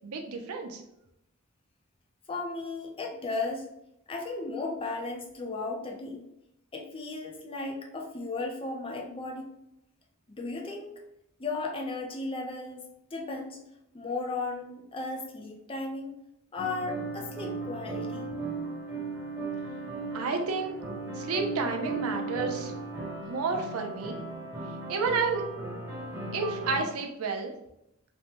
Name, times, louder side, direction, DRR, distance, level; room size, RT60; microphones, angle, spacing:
voice 1, 0.0-0.8 20.1-20.8 21.2-22.7 23.3-24.2 24.9-25.5 26.3-27.5, right 4 dB, 90° right, 4 dB, 0.5 m, -30 dB
voice 2, 2.3-3.7 4.1-6.3 6.7-9.5 10.3-10.9 11.4-13.6 13.9-16.1 16.5-18.3, left 3 dB, 25° left, 1 dB, 0.5 m, -35 dB
sound 1, 16.6-26.8, right 3 dB, 15° right, 0.9 m, -36 dB
3.2 x 2.1 x 2.8 m, 0.82 s
head